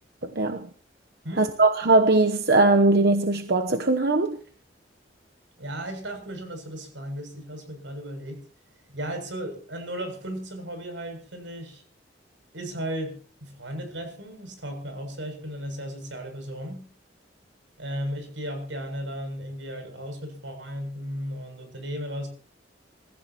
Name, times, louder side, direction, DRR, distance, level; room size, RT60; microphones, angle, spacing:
voice 1, 0.2-0.7 1.4-4.4, right 2 dB, 60° right, 1.0 m, -20 dB
voice 2, 5.6-8.4 8.9-11.8 12.5-16.9 17.8-22.3, equal, 90° right, 7.5 m, -35 dB
27.0 x 15.0 x 3.0 m
head